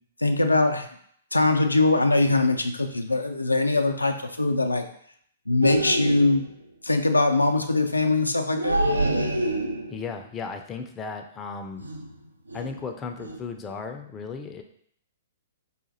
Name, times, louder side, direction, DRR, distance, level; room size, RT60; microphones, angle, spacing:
voice 1, 0.2-0.9 1.3-4.9 5.5-6.5 6.8-8.8, left 2 dB, 90° left, 6 dB, 0.3 m, -22 dB
sound 1, 5.6-6.5 8.5-10.1 11.8-12.1 12.5-12.8 13.2-13.4, right 1 dB, 85° right, 0.4 m, -27 dB
voice 2, 9.9-11.8 12.5-14.6, left 5 dB, 20° left, 4 dB, 0.4 m, -35 dB
4.9 x 2.4 x 2.6 m, 0.65 s
figure-of-eight pair, 115°, 0 cm